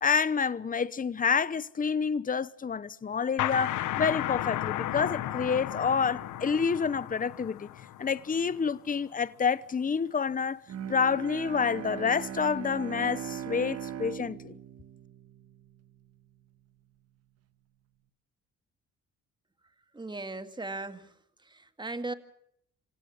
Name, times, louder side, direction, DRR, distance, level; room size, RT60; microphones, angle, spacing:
voice 1, 0.0-7.7 8.0-10.6 10.9-14.5, left 6 dB, 30° left, 0.9 m, -28 dB
sound 1, 3.4-8.8, left 13 dB, 85° left, 1.3 m, -34 dB
Bowed string instrument, 10.7-15.9, right 9 dB, 55° right, 1.5 m, -39 dB
voice 2, 19.9-21.1 21.4-22.1, right 2 dB, 15° right, 2.0 m, -37 dB
27.5 x 17.0 x 7.2 m
cardioid pair, 90°, 30 cm